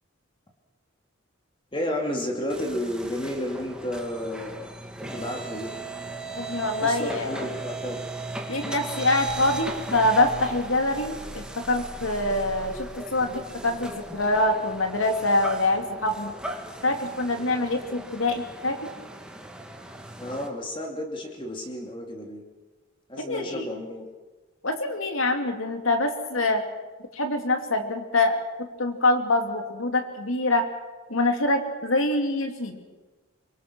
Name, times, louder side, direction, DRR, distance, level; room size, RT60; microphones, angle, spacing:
voice 1, 1.7-4.7 5.0-5.7 6.8-8.0 20.2-22.4 23.1-24.1, left 1 dB, 25° left, 1 dB, 2.6 m, -32 dB
sound 1, 2.5-20.5, right 2 dB, 5° right, 1.9 m, -38 dB
voice 2, 6.4-7.5 8.5-16.3 16.8-18.8 23.2-23.7 24.6-26.6 27.1-30.7 31.1-32.8, left 2 dB, 90° left, 5 dB, 2.8 m, -25 dB
25.0 x 23.5 x 6.3 m, 1.2 s
head